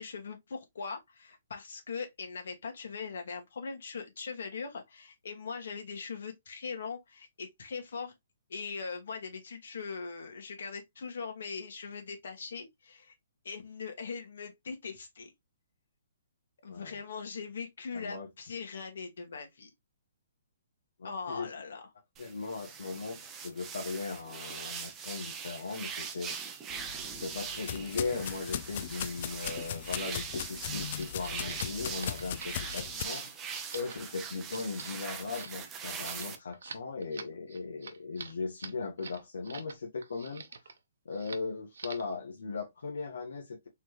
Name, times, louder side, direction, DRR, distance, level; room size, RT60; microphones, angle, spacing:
voice 1, 0.0-8.1 8.5-13.1 13.4-15.3 16.6-19.7 21.0-21.8, left 5 dB, 65° left, 1.8 m, -40 dB
voice 2, 16.7-17.0 17.9-18.3 21.0-21.5 22.2-26.4 27.0-40.4 41.0-43.7, left 4 dB, 85° left, 1.3 m, -38 dB
sound 1, 22.2-36.4, right 6 dB, 15° right, 0.6 m, -41 dB
sound 2, 26.7-33.0, left 11 dB, 35° left, 0.3 m, -39 dB
sound 3, 30.6-39.8 40.0-40.8 41.1-41.5 41.7-42.1, right 5 dB, 75° right, 0.9 m, -46 dB
4.3 x 3.6 x 3.1 m
hypercardioid pair, 170°, 0 cm